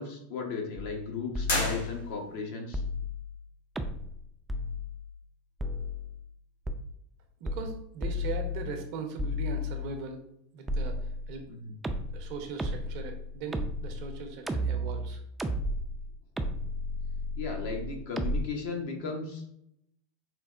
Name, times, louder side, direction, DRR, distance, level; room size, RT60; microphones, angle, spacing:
voice 1, 0.0-2.8 11.5-11.7 17.4-19.5, left 4 dB, 70° left, 2 dB, 0.8 m, -36 dB
sound 1, 0.8-1.1 1.3-2.2 2.7-3.4 3.8-4.2 4.5-5.1 5.6-6.2 6.7-6.8 7.5-8.9 9.2-10.0 10.7-11.4 11.8-18.4, left 1 dB, 10° right, 0.3 m, -33 dB
sound 2, 1.4-2.5, left 1 dB, 85° left, 1.1 m, -32 dB
voice 2, 7.4-10.2 10.5-11.5 12.1-15.2, right 5 dB, 60° right, 5 dB, 0.6 m, -39 dB
4.4 x 2.1 x 2.4 m, 0.75 s
hypercardioid pair, 105°, 0 cm